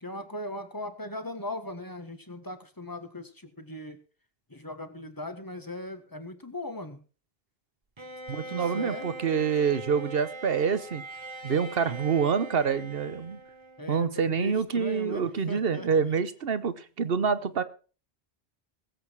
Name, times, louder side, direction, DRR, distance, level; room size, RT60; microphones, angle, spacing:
voice 1, 0.0-4.0 4.5-7.0 8.3-9.1 13.8-15.9, left 2 dB, 20° left, 8 dB, 1.6 m, -39 dB
Bowed string instrument, 8.0-14.0, right 2 dB, 30° right, 1.0 m, -42 dB
voice 2, 8.3-11.0 11.4-13.4 13.9-17.6, right 6 dB, 65° right, 14 dB, 1.2 m, -27 dB
20.0 x 8.0 x 4.7 m, 0.37 s
omnidirectional pair, 1.0 m